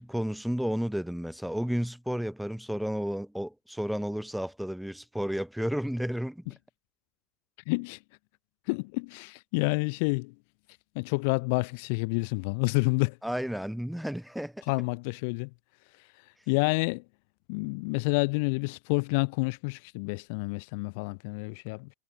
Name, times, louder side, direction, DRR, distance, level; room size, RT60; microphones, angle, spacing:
voice 1, 0.0-6.5 13.2-14.7, equal, ahead, 0.8 m, -32 dB
voice 2, 7.7-8.0 8.7-10.3 11.0-13.2 14.7-15.5 16.5-17.0 17.5-21.9, left 31 dB, 65° left, 0.3 m, -28 dB
supercardioid pair, 110°, 0 cm